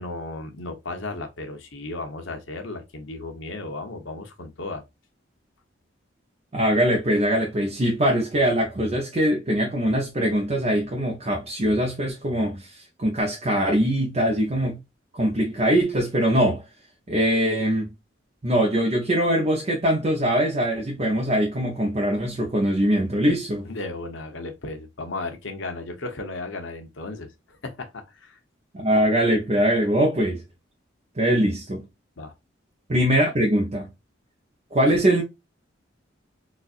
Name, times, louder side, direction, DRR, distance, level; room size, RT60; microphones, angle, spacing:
voice 1, 0.0-4.8 23.6-28.4 32.2-32.3, left 2 dB, 75° left, 0.9 m, -35 dB
voice 2, 6.5-14.8 15.1-16.6 17.1-17.9 18.4-23.7 28.7-30.4 31.2-31.8 32.9-33.9 34.7-35.2, equal, 35° right, 0.7 m, -22 dB
4.0 x 2.4 x 2.4 m
head